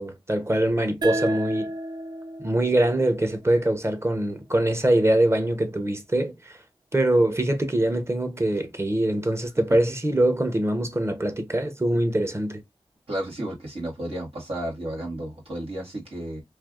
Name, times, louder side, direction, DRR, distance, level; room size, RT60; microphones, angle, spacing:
voice 1, 0.0-1.7 2.4-6.6 6.9-12.6, right 1 dB, 30° right, 0.7 m, -23 dB
sound 1, 1.0-4.2, right 1 dB, 45° right, 0.4 m, -33 dB
voice 2, 13.1-16.4, right 1 dB, 85° right, 1.5 m, -32 dB
3.2 x 2.4 x 2.3 m
cardioid pair, 40°, 10 cm